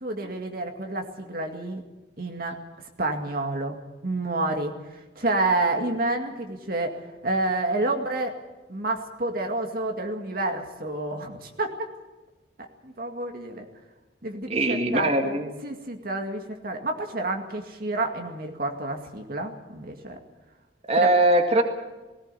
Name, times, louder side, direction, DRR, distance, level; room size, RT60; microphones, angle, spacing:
voice 1, 0.0-1.8 2.2-2.6 3.0-4.7 5.2-7.0 7.2-8.4 8.7-11.7 12.8-13.7 14.2-15.1 15.6-20.2, right 2 dB, 50° right, 3 dB, 2.2 m, -29 dB
voice 2, 14.5-15.6 20.9-21.6, right 1 dB, 35° right, 4 dB, 2.2 m, -21 dB
18.5 x 18.5 x 8.4 m, 1.1 s
head